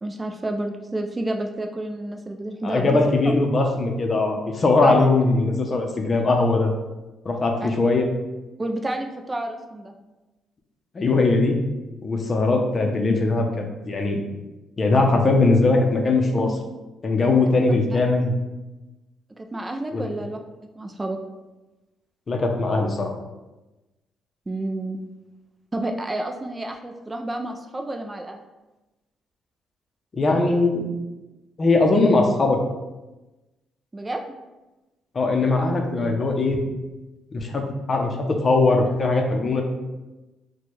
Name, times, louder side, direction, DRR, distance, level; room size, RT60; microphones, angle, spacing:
voice 1, 0.0-3.0 4.8-5.0 7.6-7.7 8.6-9.9 19.4-20.4 20.8-21.2 24.5-25.0 25.7-28.4 33.9-34.2, right 1 dB, 20° right, 3 dB, 0.3 m, -30 dB
voice 2, 2.6-6.7 7.2-8.1 10.9-11.6 12.0-14.2 14.8-16.6 17.0-18.3 19.9-20.0 22.3-23.1 30.1-30.9 31.6-32.6 35.1-36.6 37.3-39.6, left 3 dB, 40° left, 3 dB, 0.6 m, -20 dB
4.2 x 2.2 x 3.1 m, 1.1 s
cardioid pair, 90°, 0 cm